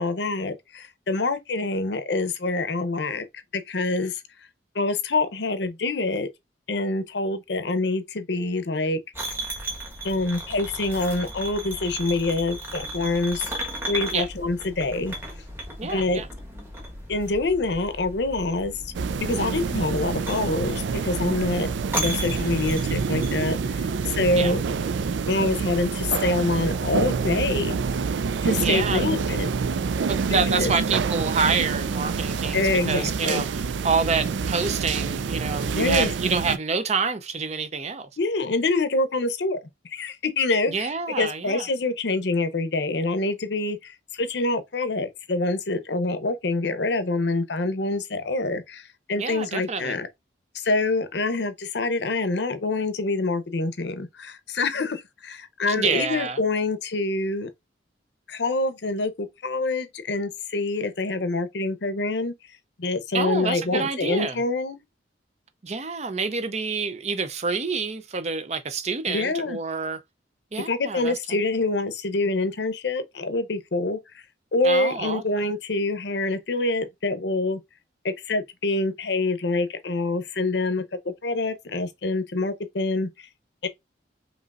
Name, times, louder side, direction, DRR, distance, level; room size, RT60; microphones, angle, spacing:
voice 1, 0.0-3.3 3.5-4.2 4.7-6.3 6.7-9.0 10.0-13.5 13.9-15.1 15.9-16.2 17.1-18.7 19.2-21.7 22.0-24.6 25.3-27.8 28.4-29.5 30.5-30.7 32.5-33.4 35.7-36.1 38.2-39.6 39.8-40.9 41.2-50.1 50.5-57.5 58.3-62.3 62.8-64.8 69.1-69.6 70.7-74.2 74.5-77.6 78.0-83.1 83.6-83.7, left 2 dB, 65° left, 0.7 m, -26 dB
sound 1, 9.1-23.5, right 1 dB, 15° right, 1.2 m, -35 dB
voice 2, 15.8-16.3 24.3-24.5 28.5-29.1 30.1-38.1 40.7-41.7 49.2-50.0 55.7-56.4 63.1-64.4 65.6-70.0 70.5-71.1 74.6-75.2, right 5 dB, 40° right, 0.6 m, -27 dB
sound 2, 18.9-36.6, right 5 dB, 80° right, 0.4 m, -27 dB
5.3 x 3.0 x 2.4 m
head